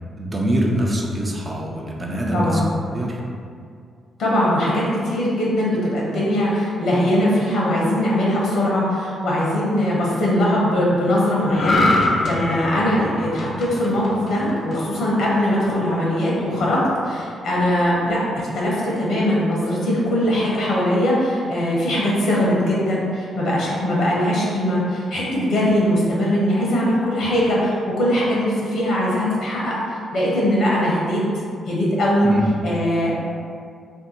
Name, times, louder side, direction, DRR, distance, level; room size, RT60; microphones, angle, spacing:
voice 1, 0.2-3.2 32.2-32.4, equal, 30° right, -2 dB, 0.5 m, -24 dB
voice 2, 2.3-2.6 4.2-31.2 31.7-32.3 32.6-33.1, left 1 dB, 80° left, -5 dB, 0.8 m, -21 dB
sound 1, 11.5-15.0 15.4-15.6, left 2 dB, 50° left, 0.5 m, -23 dB
2.7 x 2.2 x 4.0 m, 2.2 s
cardioid pair, 70°, 0 cm